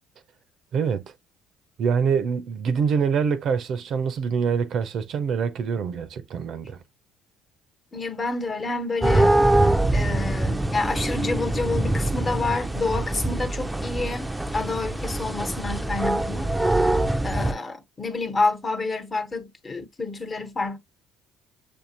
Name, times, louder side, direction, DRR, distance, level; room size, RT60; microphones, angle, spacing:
voice 1, 0.7-1.0 1.8-6.8, right 6 dB, 60° right, 0.6 m, -25 dB
voice 2, 7.9-9.3 9.9-16.5 17.2-20.8, left 3 dB, 30° left, 1.2 m, -28 dB
sound 1, 9.0-17.5, right 1 dB, 5° right, 0.5 m, -23 dB
6.6 x 2.7 x 2.8 m
hypercardioid pair, 60°, 0 cm